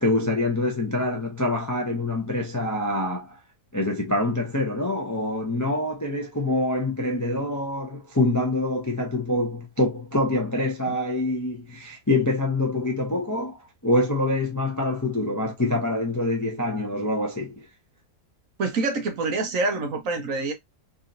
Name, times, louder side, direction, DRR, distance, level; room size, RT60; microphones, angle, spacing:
voice 1, 0.0-3.4 3.7-17.7, left 2 dB, 25° left, 0.4 m, -25 dB
voice 2, 18.6-20.5, right 3 dB, 60° right, 1.2 m, -26 dB
3.7 x 2.7 x 2.5 m
omnidirectional pair, 1.7 m